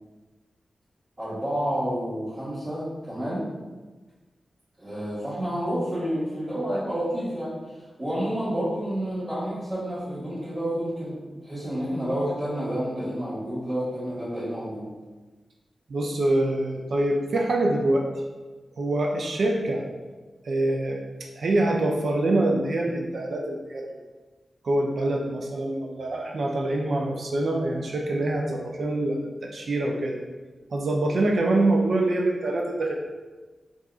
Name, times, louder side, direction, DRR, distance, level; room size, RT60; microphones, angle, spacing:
voice 1, 1.2-3.5 4.8-7.5 8.0-14.9, equal, 35° right, -15 dB, 1.4 m, -29 dB
voice 2, 15.9-18.0 18.8-19.8 20.4-21.0 21.4-23.9 24.6-30.2 30.7-32.9, right 2 dB, 70° right, 1 dB, 0.3 m, -25 dB
3.9 x 2.4 x 2.4 m, 1.3 s
wide cardioid pair, 90°, 0 cm